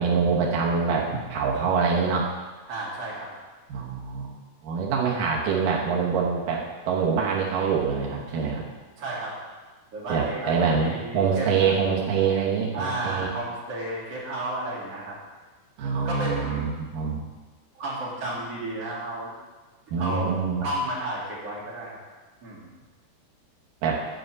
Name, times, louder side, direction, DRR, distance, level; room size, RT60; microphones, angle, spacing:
voice 1, 0.0-2.3 3.7-8.6 10.1-13.3 15.8-17.2 19.9-20.7 23.8-24.0, right 5 dB, 85° right, -3 dB, 1.9 m, -25 dB
voice 2, 2.7-3.3 9.0-9.4 9.9-11.5 12.7-15.2 16.0-16.7 17.8-19.3 20.0-20.3 20.6-22.0 22.4-22.7, right 1 dB, 35° right, -7 dB, 3.4 m, -32 dB
7.7 x 6.6 x 8.1 m, 1.3 s
omnidirectional pair, 5.7 m